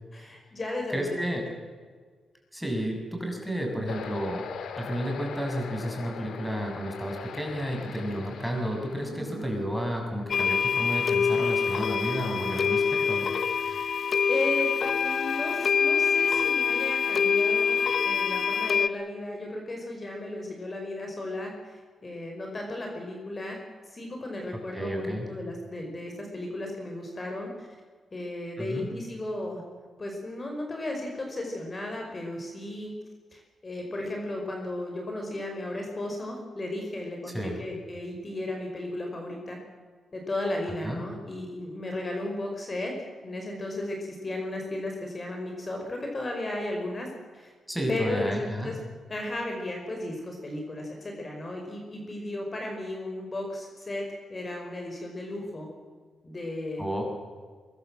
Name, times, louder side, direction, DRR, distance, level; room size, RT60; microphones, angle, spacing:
voice 1, 0.1-1.2 1.5-1.6 9.0-9.4 13.6-13.9 14.3-17.8 18.0-23.6 23.9-27.7 28.1-29.6 30.0-32.9 33.3-39.6 40.1-42.9 43.2-47.5 47.9-48.8 49.1-55.7 56.2-56.9, left 1 dB, 30° left, 1 dB, 5.5 m, -35 dB
voice 2, 0.9-1.4 2.5-4.4 4.8-13.3 24.7-25.3 28.6-28.9 37.3-37.6 40.8-41.0 47.7-48.7 56.8-57.0, equal, ahead, 2 dB, 7.1 m, -31 dB
sound 1, 3.9-13.1, left 6 dB, 80° left, 2.2 m, -43 dB
sound 2, 10.3-18.9, left 6 dB, 55° left, 0.9 m, -25 dB
24.0 x 22.0 x 7.7 m, 1.6 s
cardioid pair, 95°, 0 cm